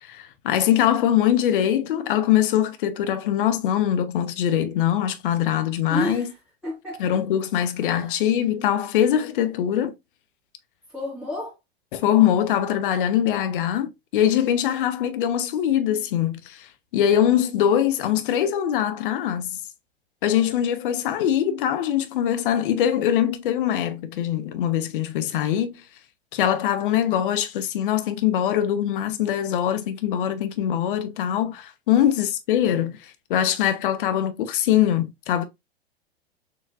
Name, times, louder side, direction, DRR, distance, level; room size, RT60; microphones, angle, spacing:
voice 1, 0.0-6.3 7.0-9.9 11.9-19.6 20.2-25.8 26.3-35.5, left 10 dB, 55° left, 1.0 m, -22 dB
voice 2, 5.9-6.3 6.6-7.2 7.9-8.1 10.9-11.6, equal, 5° right, 2.1 m, -31 dB
6.7 x 3.1 x 2.4 m
figure-of-eight pair, 100°, 32 cm